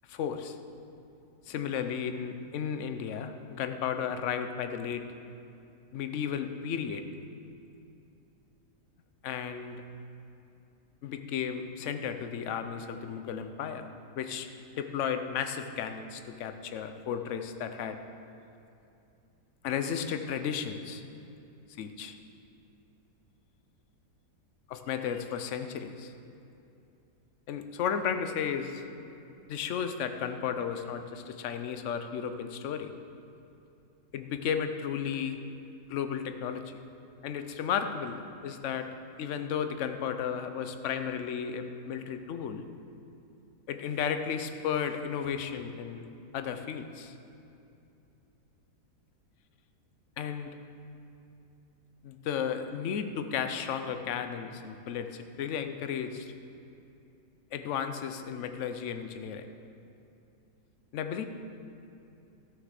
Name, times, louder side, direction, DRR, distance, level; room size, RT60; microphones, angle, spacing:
voice 1, 0.1-0.6 1.5-5.0 5.9-7.0 9.2-9.8 11.0-14.5 14.7-18.0 19.6-21.0 21.8-22.1 24.7-26.1 27.5-28.8 29.5-32.9 34.1-35.4 35.9-36.8 37.2-38.9 39.2-42.6 43.7-46.1 46.3-47.1 50.2-50.5 52.0-56.3 57.5-59.5 60.9-61.3, left 7 dB, 60° left, 8 dB, 0.9 m, -34 dB
13.0 x 6.6 x 6.5 m, 2.7 s
omnidirectional pair, 1.8 m